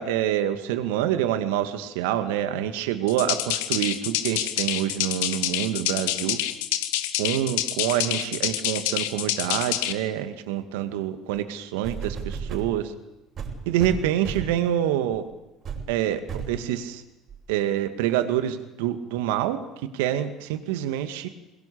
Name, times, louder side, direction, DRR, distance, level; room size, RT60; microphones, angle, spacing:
voice 1, 0.0-6.4 7.2-12.9 13.7-15.3 15.9-16.2 16.5-17.0 17.5-19.6 19.9-21.3, right 11 dB, 75° right, 9 dB, 2.1 m, -26 dB
sound 1, 3.1-9.9, left 13 dB, 75° left, 1.5 m, -27 dB
sound 2, 11.8-12.7 13.4-14.6 15.1-15.3 15.7-15.9 16.3-16.6 17.3-17.4, right 6 dB, 45° right, 6.9 m, -33 dB
23.5 x 22.0 x 8.5 m, 0.98 s
hypercardioid pair, 70°, 0 cm